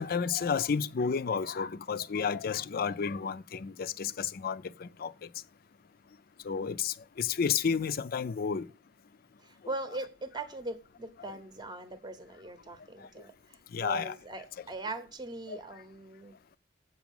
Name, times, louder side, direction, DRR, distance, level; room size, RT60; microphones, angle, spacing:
voice 1, 0.0-5.3 6.4-8.7 13.7-14.1 15.5-15.6, left 6 dB, 55° left, 0.4 m, -31 dB
voice 2, 9.4-16.4, right 2 dB, 25° right, 0.8 m, -41 dB
8.3 x 6.0 x 7.0 m
head